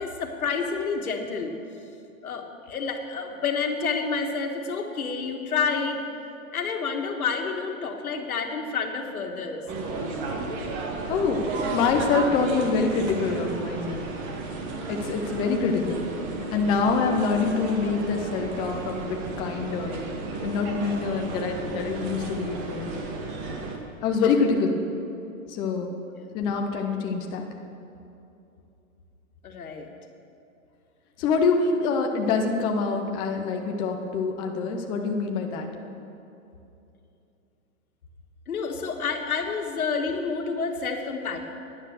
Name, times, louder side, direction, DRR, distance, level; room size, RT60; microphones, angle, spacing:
voice 1, 0.0-1.5 2.2-6.0 6.5-9.6 26.1-26.3 29.4-29.9 38.5-41.4, left 5 dB, 90° left, 4 dB, 1.7 m, -29 dB
sound 1, 9.7-23.8, right 3 dB, 35° right, 1.8 m, -33 dB
voice 2, 11.1-14.1 14.9-16.1 16.5-20.0 20.4-22.9 24.0-24.8 25.5-25.9 26.3-27.5 31.2-35.7, left 4 dB, 10° left, 3 dB, 0.4 m, -25 dB
11.0 x 9.9 x 6.7 m, 2.8 s
hypercardioid pair, 140°, 42 cm